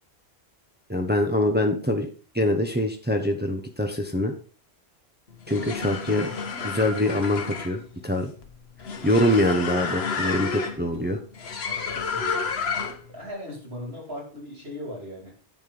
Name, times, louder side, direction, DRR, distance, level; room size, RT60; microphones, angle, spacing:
voice 1, 0.9-2.1 2.3-4.3 5.5-6.3 6.6-8.3 9.0-11.2, left 1 dB, 10° right, 3 dB, 0.9 m, -24 dB
sound 1, 5.3-13.1, left 5 dB, 70° left, 1.2 m, -31 dB
voice 2, 11.7-12.5 13.1-15.3, left 1 dB, 70° right, -2 dB, 4.6 m, -38 dB
9.7 x 4.4 x 5.1 m, 0.40 s
omnidirectional pair, 1.1 m